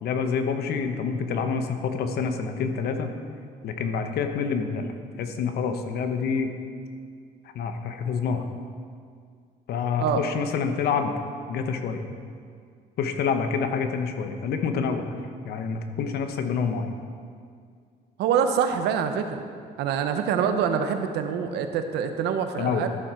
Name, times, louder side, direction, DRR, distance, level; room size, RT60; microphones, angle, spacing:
voice 1, 0.0-3.1 3.6-4.9 5.2-6.5 7.5-8.4 9.7-11.1 11.5-12.0 13.0-15.1 15.4-16.9 22.6-22.8, left 5 dB, 70° left, 7 dB, 1.0 m, -27 dB
voice 2, 18.2-19.4 19.8-22.9, right 7 dB, 80° right, 7 dB, 0.9 m, -25 dB
13.5 x 7.4 x 4.4 m, 2.2 s
cardioid pair, 110°, 17 cm